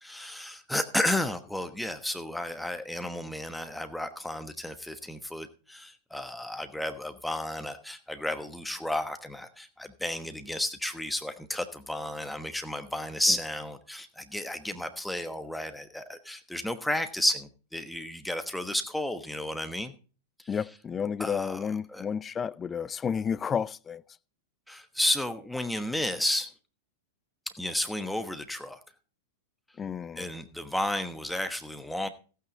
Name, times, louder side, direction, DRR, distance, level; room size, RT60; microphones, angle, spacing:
voice 1, 0.0-19.9 21.2-22.0 24.7-26.5 27.6-28.8 30.2-32.1, left 1 dB, 5° left, 1.1 m, -32 dB
voice 2, 20.5-24.0 29.8-30.3, left 7 dB, 20° left, 0.5 m, -31 dB
15.0 x 9.1 x 3.9 m
figure-of-eight pair, 95°, 0 cm